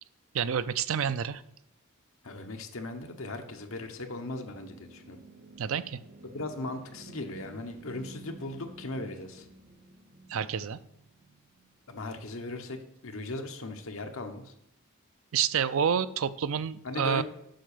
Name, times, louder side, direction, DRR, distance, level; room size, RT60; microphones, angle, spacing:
voice 1, 0.3-1.4 5.6-6.0 10.3-10.8 15.3-17.2, right 7 dB, 70° right, 15 dB, 0.4 m, -28 dB
voice 2, 2.2-5.2 6.3-9.5 11.9-14.5 16.8-17.2, left 2 dB, 65° left, 5 dB, 1.2 m, -38 dB
sound 1, 3.6-12.1, right 2 dB, 40° right, 0.9 m, -52 dB
7.7 x 6.1 x 6.7 m, 0.78 s
head